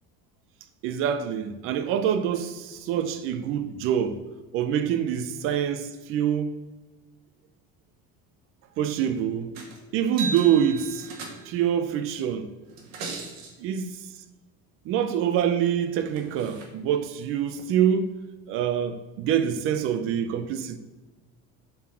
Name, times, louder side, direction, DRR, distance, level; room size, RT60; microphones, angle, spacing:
voice 1, 0.8-4.2 4.5-6.6 8.8-9.6 9.9-11.1 11.5-12.5 13.6-14.0 14.9-18.2 18.5-20.8, right 9 dB, 45° right, 0.5 m, -25 dB
sound 1, 9.5-9.8 10.0-11.7 12.7-13.5 15.7-15.8 16.1-16.6 17.6-17.7, right 4 dB, 65° right, 1.6 m, -37 dB
7.2 x 4.3 x 4.3 m
cardioid pair, 165°, 30 cm